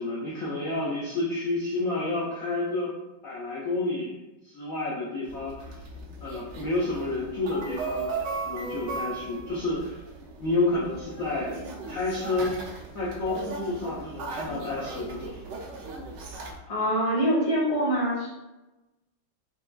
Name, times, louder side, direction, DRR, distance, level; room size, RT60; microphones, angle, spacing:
voice 1, 0.0-2.9 3.2-4.2 4.4-5.8 6.2-8.1 8.4-10.0 10.4-11.5 11.9-12.6 12.9-15.4, left 2 dB, 90° left, -6 dB, 0.7 m, -30 dB
sound 1, 5.3-16.6, right 3 dB, 70° right, 1.1 m, -37 dB
voice 2, 16.7-18.3, equal, 75° left, -6 dB, 1.7 m, -24 dB
5.9 x 2.2 x 2.2 m, 1.0 s
omnidirectional pair, 2.3 m